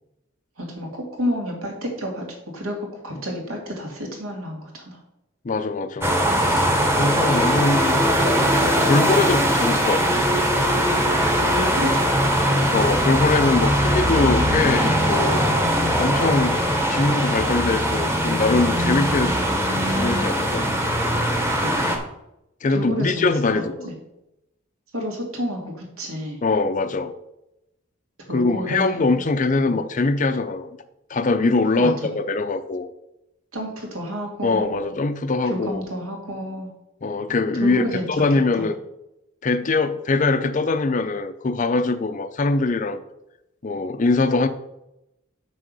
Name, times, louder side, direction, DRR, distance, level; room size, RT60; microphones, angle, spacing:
voice 1, 0.6-0.9 1.2-2.2 2.5-5.0 11.2-12.6 16.2-16.5 21.6-22.0 22.7-23.9 24.9-26.4 28.3-29.2 29.6-29.8 31.8-32.2 33.5-34.9 35.4-36.7 37.6-38.1 38.6-38.7, equal, 85° right, 1 dB, 2.4 m, -30 dB
voice 2, 5.4-8.0 8.6-10.3 12.7-15.5 16.0-16.6 16.9-19.3 19.9-20.7 22.6-23.9 26.4-27.1 28.3-30.7 31.1-32.9 34.4-35.8 37.0-38.7 39.4-43.0 43.6-44.5, left 3 dB, 35° left, 9 dB, 0.5 m, -22 dB
sound 1, 6.0-22.0, equal, 10° right, 1.0 m, -20 dB
6.9 x 6.3 x 5.3 m, 0.87 s
head